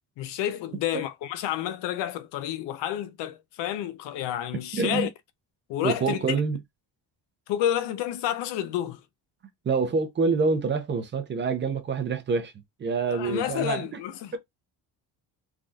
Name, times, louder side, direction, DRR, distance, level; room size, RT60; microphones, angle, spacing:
voice 1, 0.2-5.1 5.7-6.4 7.5-9.0 13.1-14.4, left 11 dB, 85° left, 0.6 m, -30 dB
voice 2, 4.7-5.1 5.8-6.6 9.6-12.5 12.8-13.9 14.3-14.4, right 4 dB, 30° right, 0.5 m, -26 dB
3.4 x 2.3 x 2.6 m
cardioid pair, 170°, 41 cm